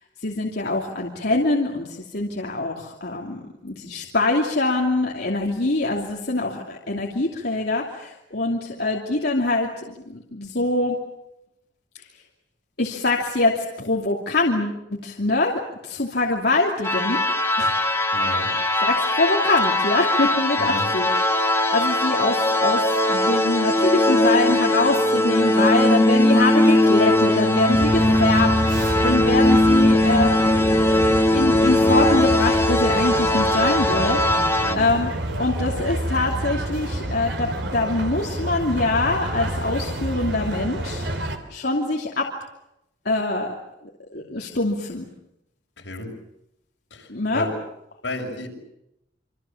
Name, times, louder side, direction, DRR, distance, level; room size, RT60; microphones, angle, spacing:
voice 1, 0.2-11.0 12.0-12.1 12.8-17.2 17.6-17.7 18.8-21.1 21.3-35.1 35.4-42.3 43.0-43.5 44.1-45.1 47.1-47.5, left 2 dB, 60° left, -1 dB, 2.8 m, -24 dB
sound 1, 16.8-34.8, left 1 dB, 15° left, 1.6 m, -19 dB
voice 2, 18.1-18.5 20.6-20.9 34.6-34.9 45.8-46.1 46.9-47.5 48.0-48.5, left 1 dB, 75° left, 1 dB, 6.4 m, -32 dB
sound 2, 27.7-41.4, right 1 dB, 65° right, 3.3 m, -28 dB
27.5 x 25.5 x 7.3 m, 0.85 s
head